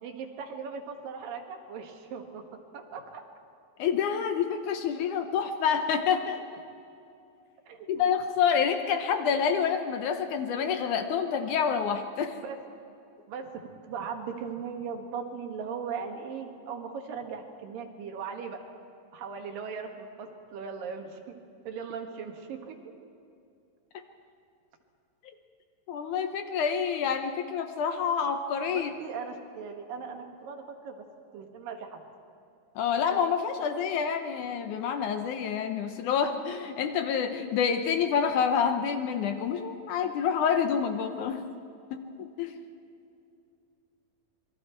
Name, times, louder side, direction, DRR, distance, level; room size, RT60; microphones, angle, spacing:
voice 1, 0.0-2.4 2.7-3.2 7.7-8.0 12.4-12.6 13.3-18.6 19.1-21.3 21.6-22.8 28.7-31.1 31.3-32.0, right 6 dB, 75° right, 3 dB, 3.2 m, -38 dB
voice 2, 3.8-6.4 7.9-12.4 25.9-28.9 32.8-41.4 41.9-42.6, left 7 dB, 70° left, 7 dB, 2.1 m, -28 dB
26.5 x 22.0 x 4.5 m, 2.6 s
omnidirectional pair, 4.1 m